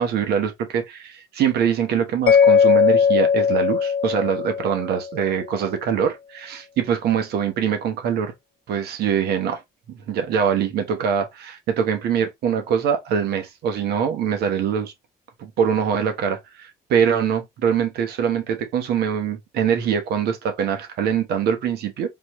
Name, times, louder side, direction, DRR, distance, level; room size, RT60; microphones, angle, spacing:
voice 1, 0.0-8.3 8.7-9.6 10.1-14.9 15.4-22.2, right 7 dB, 70° right, 1.1 m, -23 dB
Mallet percussion, 2.3-5.3, left 7 dB, 60° left, 0.7 m, -18 dB
4.0 x 3.0 x 3.0 m
cardioid pair, 110°, 17 cm